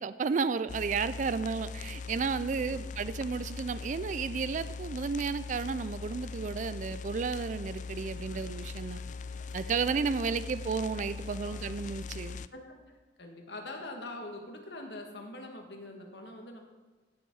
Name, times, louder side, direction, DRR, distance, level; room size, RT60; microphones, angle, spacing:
voice 1, 0.0-9.0 9.5-12.4, right 5 dB, 45° right, 14 dB, 0.4 m, -32 dB
sound 1, 0.7-12.5, left 4 dB, 45° left, 0.4 m, -40 dB
voice 2, 13.2-16.6, left 2 dB, 75° left, 2 dB, 2.0 m, -44 dB
16.0 x 7.2 x 4.8 m, 1.3 s
head